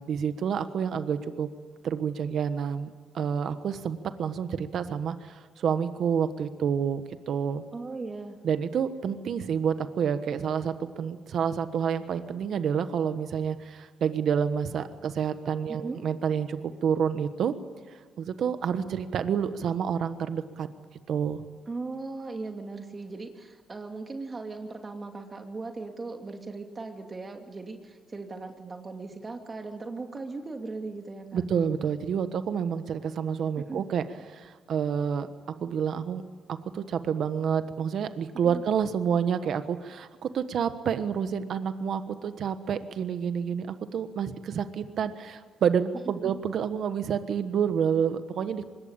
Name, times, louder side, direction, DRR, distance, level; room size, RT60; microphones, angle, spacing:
voice 1, 0.0-1.5 1.8-7.6 8.4-17.5 18.2-20.7 21.1-21.4 31.3-36.2 36.5-48.7, right 7 dB, 65° right, 10 dB, 1.3 m, -29 dB
voice 2, 7.7-8.4 15.7-16.0 21.7-31.4 33.6-33.8 38.4-38.6 46.2-46.4, right 3 dB, 30° right, 4 dB, 2.7 m, -38 dB
24.5 x 21.5 x 8.8 m, 1.4 s
cardioid pair, 90°, 0 cm